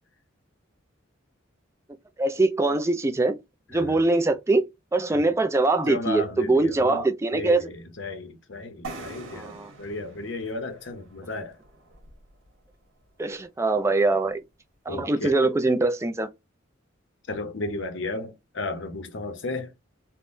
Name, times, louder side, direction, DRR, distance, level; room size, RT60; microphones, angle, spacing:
voice 1, 2.2-3.4 3.7-4.6 4.9-7.7 9.3-9.7 13.2-14.4 14.9-16.3, right 2 dB, 15° right, 0.3 m, -23 dB
voice 2, 3.7-4.0 5.1-5.2 5.9-7.0 7.3-11.6 14.9-15.4 17.3-19.7, left 2 dB, 65° left, 0.7 m, -34 dB
sound 1, 8.8-12.5, right 3 dB, 85° right, 1.2 m, -43 dB
3.5 x 2.1 x 2.5 m
head